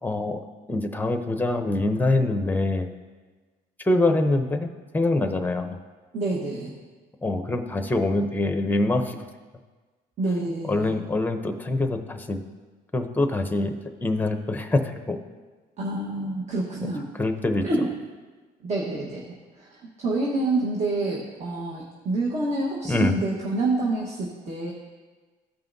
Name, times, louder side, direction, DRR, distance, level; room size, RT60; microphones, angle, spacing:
voice 1, 0.0-0.4 0.7-2.9 3.8-4.7 4.9-5.8 7.2-9.2 10.6-12.4 12.9-15.2 16.8-16.9 17.2-17.6 22.8-23.1, left 2 dB, 10° left, 6 dB, 0.7 m, -24 dB
voice 2, 6.1-6.8 10.2-11.0 15.8-17.1 17.6-17.9 18.6-19.2 19.5-24.7, right 2 dB, 40° right, -4 dB, 1.3 m, -27 dB
14.5 x 5.5 x 2.7 m, 1.4 s
cardioid pair, 110°, 17 cm